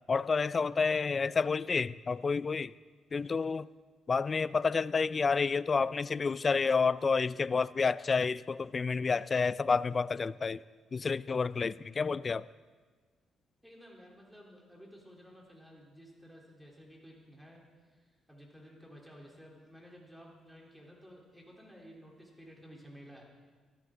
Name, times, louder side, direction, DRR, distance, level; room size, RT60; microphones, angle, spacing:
voice 1, 0.1-2.7 3.1-3.7 4.1-10.6 10.9-12.5, left 5 dB, 35° left, 0.3 m, -29 dB
voice 2, 13.6-17.6 17.9-23.2, equal, 5° right, 3.2 m, -54 dB
16.0 x 13.0 x 3.7 m
cardioid pair, 90°, 0 cm